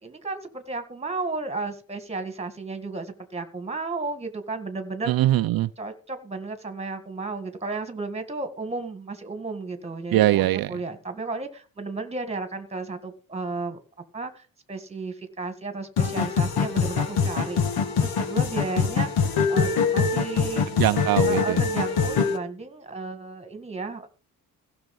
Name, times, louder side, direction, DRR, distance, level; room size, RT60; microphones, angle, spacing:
voice 1, 0.0-5.1 5.8-13.8 14.1-20.7 21.3-24.1, right 3 dB, 15° right, 1.9 m, -33 dB
voice 2, 5.1-5.7 10.1-10.8 20.8-21.6, right 14 dB, 70° right, 0.5 m, -22 dB
sound 1, 16.0-22.4, left 6 dB, 80° left, 2.1 m, -24 dB
15.5 x 6.5 x 5.4 m
cardioid pair, 155°, 37 cm